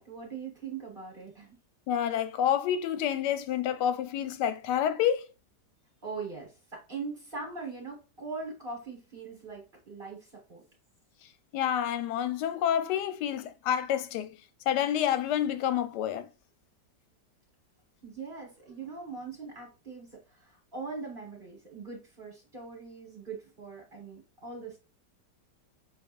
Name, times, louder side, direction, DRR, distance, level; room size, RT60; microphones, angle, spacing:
voice 1, 0.0-1.6 6.0-10.6 18.0-24.8, right 4 dB, 30° right, 1.4 m, -41 dB
voice 2, 1.9-5.3 11.5-14.3 14.7-16.3, left 10 dB, 75° left, 1.1 m, -28 dB
6.1 x 3.3 x 2.5 m
omnidirectional pair, 1.9 m